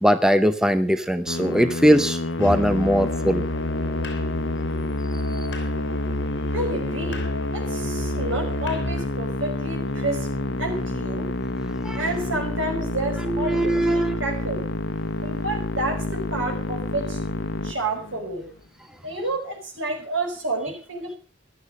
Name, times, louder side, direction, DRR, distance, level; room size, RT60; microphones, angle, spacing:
voice 1, 0.0-3.5 11.8-12.0 13.2-14.2, equal, 5° right, 10 dB, 0.7 m, -20 dB
Musical instrument, 1.3-18.4, left 2 dB, 80° left, 1.1 m, -29 dB
Musical instrument 2, 2.4-9.1, left 1 dB, 60° left, 4.3 m, -30 dB
voice 2, 6.5-10.3 10.6-11.3 11.9-14.6 15.2-17.2 17.6-18.5 19.0-21.2, right 2 dB, 85° right, 3 dB, 5.4 m, -30 dB
15.0 x 12.0 x 5.3 m, 0.37 s
head